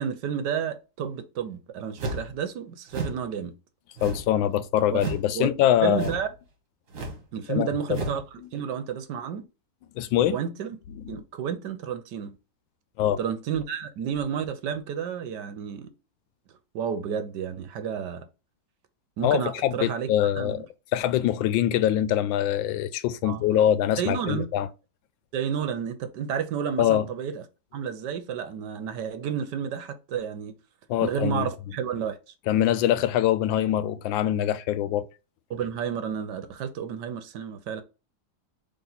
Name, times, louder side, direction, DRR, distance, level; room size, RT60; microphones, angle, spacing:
voice 1, 0.0-3.5 4.9-5.0 5.3-5.5 5.8-6.3 7.3-9.5 10.3-10.8 11.1-12.3 13.2-15.9 16.7-18.2 19.2-20.1 20.4-20.6 23.2-23.6 24.0-24.5 25.3-27.4 27.7-30.6 31.0-32.2 35.5-37.8, right 7 dB, 70° right, 1.3 m, -31 dB
sound 1, 2.0-2.3 2.9-3.2 4.0-4.4 4.9-5.3 5.9-6.3 6.9-7.2 7.9-8.2, right 2 dB, 50° right, 1.4 m, -33 dB
voice 2, 4.0-6.1 7.5-8.0 10.0-10.4 11.1-11.2 13.0-13.2 19.2-20.6 20.9-24.7 26.8-27.1 30.9-31.4 32.5-35.1, left 11 dB, 90° left, 1.3 m, -24 dB
4.2 x 3.3 x 3.9 m
omnidirectional pair, 2.0 m